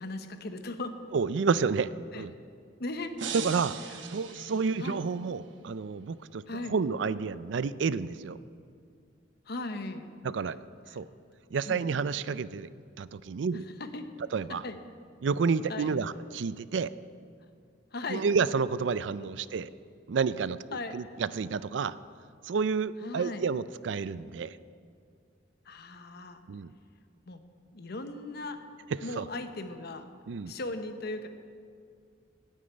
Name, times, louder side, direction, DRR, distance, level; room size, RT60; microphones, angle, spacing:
voice 1, 0.0-1.0 2.1-2.3 2.8-3.4 4.3-5.0 6.5-6.7 9.5-10.1 10.9-11.0 11.7-11.8 13.8-14.0 14.6-14.8 15.7-15.9 17.9-18.2 19.2-19.3 20.7-21.0 23.0-23.5 25.6-26.4 27.3-27.4 27.7-28.6 29.0-30.1 30.5-31.3, left 2 dB, 60° left, 8 dB, 0.9 m, -38 dB
voice 2, 1.1-2.3 3.3-3.7 4.1-6.4 6.7-8.4 10.2-10.6 10.9-11.1 11.5-12.7 13.0-13.6 14.3-14.6 15.2-16.9 18.1-19.7 20.1-20.6 20.9-22.0 22.4-24.6 26.5-26.7 28.9-29.3 30.3-30.5, right 5 dB, 70° right, 16 dB, 0.4 m, -30 dB
sound 1, 3.2-5.3, right 6 dB, 85° right, 1.0 m, -40 dB
9.9 x 9.2 x 8.9 m, 2.3 s
head